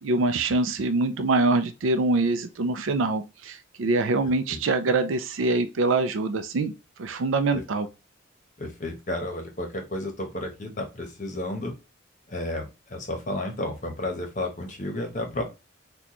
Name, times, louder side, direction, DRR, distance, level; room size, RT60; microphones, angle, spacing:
voice 1, 0.0-6.7 7.0-7.9, right 3 dB, 75° right, 0.4 m, -24 dB
voice 2, 8.6-11.7 12.3-15.4, left 1 dB, 40° left, 0.9 m, -32 dB
4.1 x 2.3 x 2.9 m
head